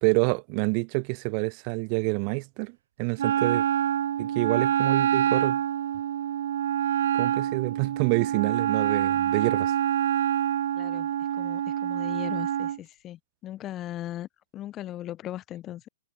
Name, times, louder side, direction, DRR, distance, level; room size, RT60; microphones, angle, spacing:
voice 1, 0.0-3.6 4.2-5.6 7.2-9.7, right 40 dB or more, 40° right, 1.9 m, -27 dB
Wind instrument woodwind instrument, 3.2-12.8, right 11 dB, 60° right, 1.4 m, -26 dB
voice 2, 10.7-15.9, left 13 dB, 25° left, 6.4 m, -38 dB
figure-of-eight pair, 115°, 0 cm